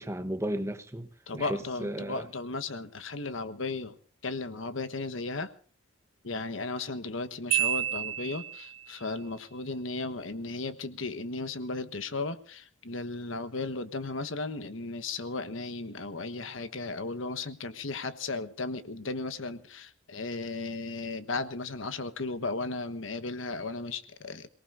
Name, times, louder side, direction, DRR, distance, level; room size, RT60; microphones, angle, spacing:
voice 1, 0.0-2.3, right 1 dB, 15° right, 0.9 m, -34 dB
voice 2, 1.3-3.9 4.2-5.5 6.2-24.5, left 3 dB, 80° left, 1.3 m, -35 dB
Marimba xylophone, 7.5-8.9, right 12 dB, 85° right, 0.9 m, -30 dB
28.0 x 18.5 x 2.6 m
head